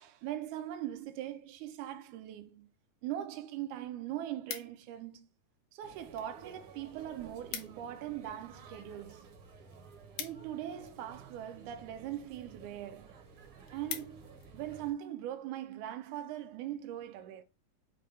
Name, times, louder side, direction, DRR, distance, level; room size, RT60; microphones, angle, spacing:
voice 1, 0.0-2.7 3.0-5.2 5.7-9.3 10.2-13.2 13.7-17.4, right 12 dB, 80° right, 1.9 m, -41 dB
sound 1, 3.3-3.4 3.7-5.1 5.8-6.3 6.6-6.7 7.0-7.1 7.3-7.9 8.3-11.1 11.9-12.2 12.7-12.8 13.1-13.2 13.5-14.5 15.0-15.2, left 10 dB, 80° left, 2.2 m, -44 dB
sound 2, 5.8-14.9, right 5 dB, 65° right, 1.4 m, -54 dB
6.5 x 2.2 x 3.3 m
omnidirectional pair, 3.6 m